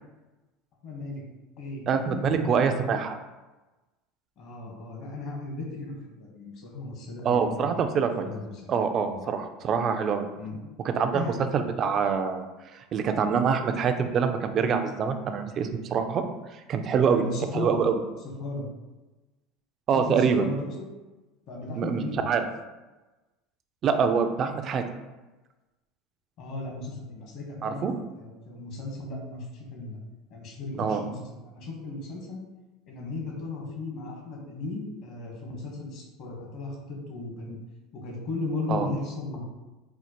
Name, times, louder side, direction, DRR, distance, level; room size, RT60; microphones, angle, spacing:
voice 1, 0.8-1.2 1.6-2.6 4.4-8.7 9.0-9.2 10.4-10.6 11.1-11.4 17.1-17.8 18.4-18.7 19.9-20.9 21.5-22.3 26.4-27.9 28.1-30.0 30.3-32.4 32.9-37.6 37.9-39.4, left 3 dB, 60° left, -1 dB, 1.1 m, -36 dB
voice 2, 1.9-3.2 7.2-8.3 8.7-10.3 10.8-11.2 11.5-12.5 12.9-16.2 16.5-17.2 17.5-18.0 19.9-20.5 21.8-22.0 22.3-22.4 23.8-24.8 27.6-27.9 30.8-31.0 38.7-38.9, right 6 dB, 40° right, 7 dB, 0.3 m, -25 dB
4.3 x 2.1 x 2.9 m, 1.1 s
supercardioid pair, 105°, 0 cm